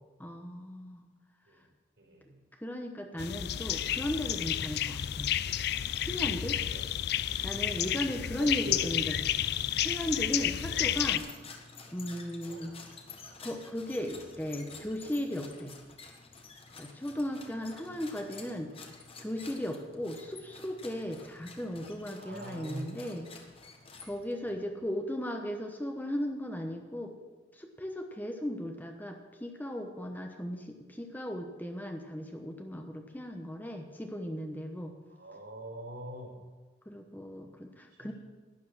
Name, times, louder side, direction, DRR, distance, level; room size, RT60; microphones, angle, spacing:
voice 1, 0.2-1.0 2.6-5.3 6.0-6.6 7.4-9.5 9.8-11.2 11.9-12.7 13.4-15.7 16.8-18.7 19.2-23.3 24.0-27.1 27.6-34.9 36.9-38.1, left 1 dB, 10° left, 4 dB, 1.0 m, -36 dB
voice 2, 2.0-2.4 6.5-6.9 8.3-8.9 10.7-11.0 11.8-11.9 12.4-12.8 22.1-22.9 24.4-24.7 35.1-36.3 38.0-38.1, right 1 dB, 70° right, -2 dB, 4.4 m, -44 dB
sound 1, 3.2-11.2, left 11 dB, 65° left, 0.4 m, -31 dB
sound 2, 10.6-24.5, left 4 dB, 35° left, 1.4 m, -50 dB
12.0 x 10.0 x 6.1 m, 1.3 s
head